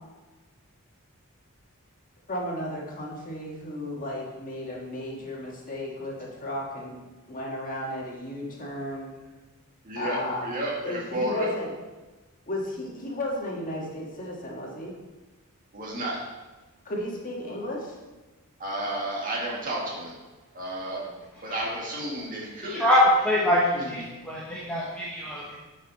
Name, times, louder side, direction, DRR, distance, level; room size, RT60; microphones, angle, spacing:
voice 1, 2.3-7.0 7.3-9.1 10.0-10.5 10.9-11.7 12.5-15.0 16.9-18.0 23.5-24.0, left 1 dB, 40° left, -3 dB, 1.7 m, -34 dB
voice 2, 9.8-11.5 15.7-16.2 18.6-20.1 20.5-21.0 21.4-22.8, right 1 dB, 40° right, -4 dB, 2.0 m, -31 dB
voice 3, 21.5-21.8 22.6-25.6, left 1 dB, 5° left, -7 dB, 1.2 m, -24 dB
10.0 x 5.4 x 4.1 m, 1.2 s
head